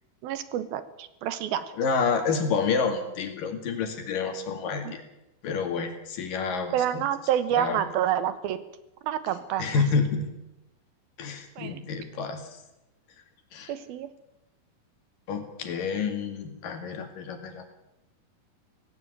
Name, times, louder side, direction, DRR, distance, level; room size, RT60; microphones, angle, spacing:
voice 1, 0.2-1.7 4.8-4.9 6.7-8.6 9.0-9.8 11.6-11.8 13.7-14.1, right 10 dB, 80° right, 13 dB, 2.9 m, -28 dB
voice 2, 1.8-5.0 5.4-7.0 7.6-7.8 9.6-10.3 11.2-12.5 13.5-13.7 15.3-17.7, left 5 dB, 65° left, 6 dB, 3.8 m, -29 dB
17.5 x 17.0 x 9.3 m, 0.91 s
omnidirectional pair, 4.3 m